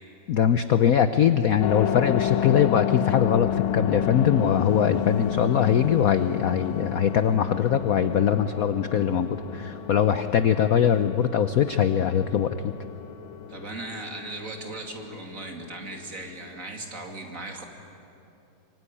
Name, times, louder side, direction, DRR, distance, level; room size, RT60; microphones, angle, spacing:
voice 1, 0.3-12.7, left 9 dB, 60° left, 10 dB, 0.9 m, -22 dB
sound 1, 1.6-16.6, left 9 dB, 85° left, 1.8 m, -31 dB
voice 2, 13.5-17.6, right 2 dB, 40° right, 3 dB, 2.9 m, -38 dB
25.0 x 23.5 x 9.9 m, 2.8 s
omnidirectional pair, 2.2 m